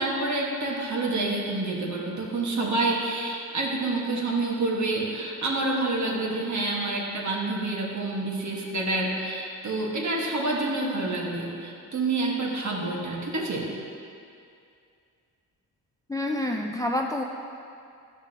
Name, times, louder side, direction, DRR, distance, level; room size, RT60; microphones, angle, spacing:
voice 1, 0.0-13.7, right 2 dB, 45° right, -2 dB, 1.5 m, -28 dB
voice 2, 16.1-17.2, left 1 dB, 10° left, 1 dB, 0.4 m, -27 dB
10.5 x 6.1 x 2.8 m, 2.4 s
cardioid pair, 65°, 39 cm